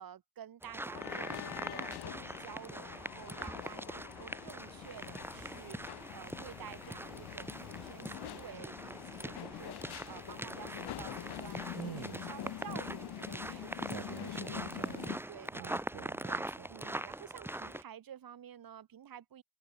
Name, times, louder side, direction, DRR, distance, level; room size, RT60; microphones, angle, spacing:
voice 1, 0.0-14.7 15.3-15.8 16.3-19.4, right 9 dB, 60° right, 2.0 m, -51 dB
sound 1, 0.6-17.8, right 1 dB, 5° right, 1.3 m, -43 dB
sound 2, 0.9-15.2, left 12 dB, 80° left, 1.9 m, -45 dB
voice 2, 11.8-12.2 13.9-16.7, right 11 dB, 80° right, 3.9 m, -47 dB
open air
cardioid pair, 75°, 39 cm